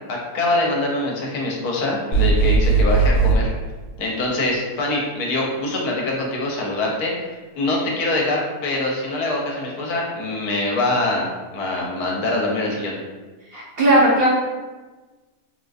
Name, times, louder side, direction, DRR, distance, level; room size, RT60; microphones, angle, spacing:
voice 1, 0.1-3.5 4.0-11.3 11.5-12.9, left 2 dB, 75° left, -2 dB, 1.2 m, -24 dB
sound 1, 2.1-3.4, right 4 dB, 50° left, 0.9 m, -17 dB
voice 2, 13.5-14.3, right 1 dB, 65° right, -6 dB, 0.6 m, -16 dB
3.6 x 2.4 x 2.4 m, 1.3 s
omnidirectional pair, 1.6 m